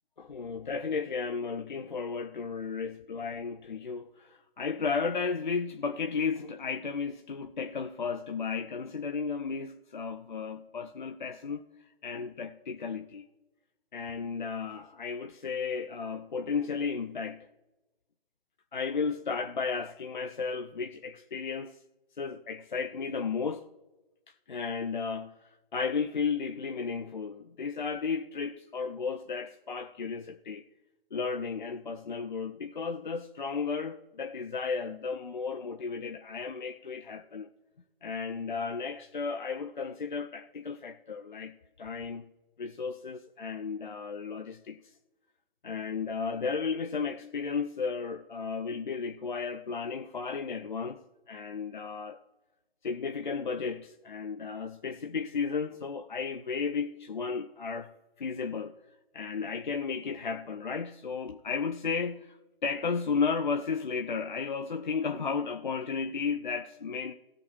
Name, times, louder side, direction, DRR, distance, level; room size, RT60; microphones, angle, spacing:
voice 1, 0.2-11.6 12.0-13.2 13.9-17.5 18.7-21.8 22.2-23.7 24.5-30.6 31.1-37.5 38.0-42.3 42.6-44.8 45.6-52.2 52.8-57.9 58.2-58.8 59.1-67.1, left 5 dB, 50° left, 0.7 m, -34 dB
19.0 x 6.5 x 3.1 m
figure-of-eight pair, 145°, 30 cm